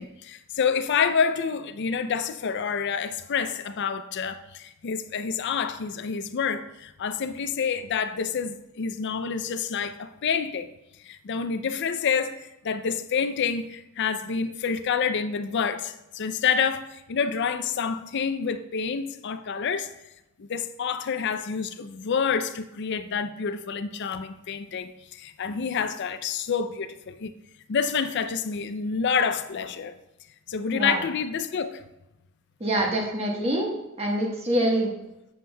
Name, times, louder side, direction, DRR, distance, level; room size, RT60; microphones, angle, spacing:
voice 1, 0.0-10.7 11.0-19.9 20.4-27.3 27.7-29.9 30.5-31.8, left 6 dB, 55° left, 0.4 m, -28 dB
voice 2, 32.6-33.7 34.0-34.9, right 1 dB, 30° right, 1.3 m, -25 dB
7.7 x 7.2 x 2.2 m
head